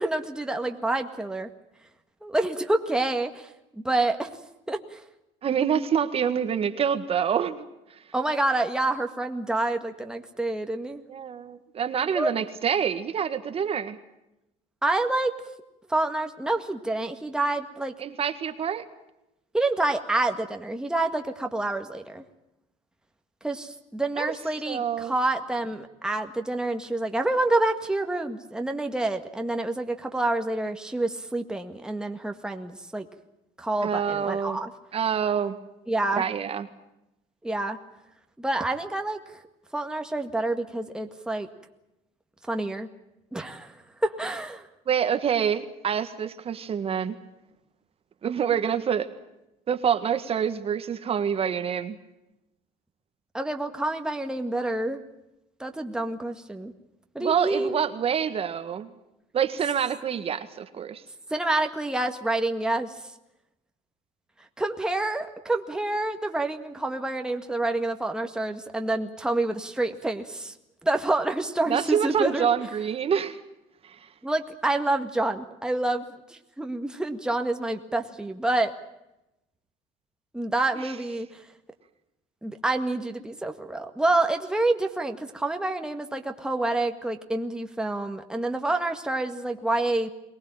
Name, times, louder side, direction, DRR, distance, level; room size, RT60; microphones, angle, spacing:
voice 1, 0.0-1.5 2.2-4.4 4.7-5.0 8.1-11.0 12.1-12.3 14.8-15.4 15.9-17.9 19.5-22.2 23.4-33.1 33.6-34.7 35.9-36.3 37.4-37.8 38.4-39.2 39.7-41.5 42.5-42.9 43.3-44.7 53.3-55.0 55.6-56.7 57.2-57.8 61.3-62.9 64.6-70.5 70.8-72.5 74.2-78.7 80.3-81.4 82.4-90.1, right 2 dB, 5° right, 5 dB, 1.8 m, -28 dB
voice 2, 5.4-8.0 11.1-14.0 18.0-18.8 24.2-24.3 24.6-25.1 33.8-34.6 34.9-35.6 36.2-36.7 44.9-47.1 48.2-49.1 49.7-52.0 57.2-58.9 59.3-61.0 71.7-73.4 73.8-74.1 80.8-80.9, right 8 dB, 40° right, 8 dB, 1.7 m, -26 dB
23.0 x 19.5 x 8.8 m, 0.91 s
cardioid pair, 110°, 15 cm